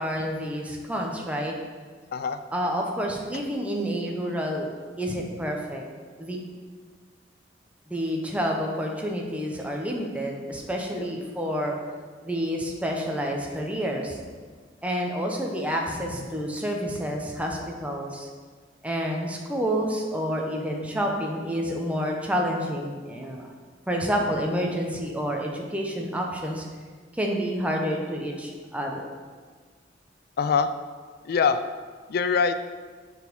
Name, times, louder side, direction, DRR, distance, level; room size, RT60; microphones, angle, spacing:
voice 1, 0.0-1.5 2.5-4.7 5.0-5.9 6.2-6.4 7.9-11.8 12.2-14.2 14.8-18.3 18.8-23.5 23.9-26.7 27.1-29.0, equal, 5° right, 0 dB, 0.8 m, -29 dB
voice 2, 30.4-30.7 31.3-31.6 32.1-32.6, left 5 dB, 55° left, 11 dB, 0.3 m, -23 dB
7.0 x 4.2 x 5.2 m, 1.5 s
head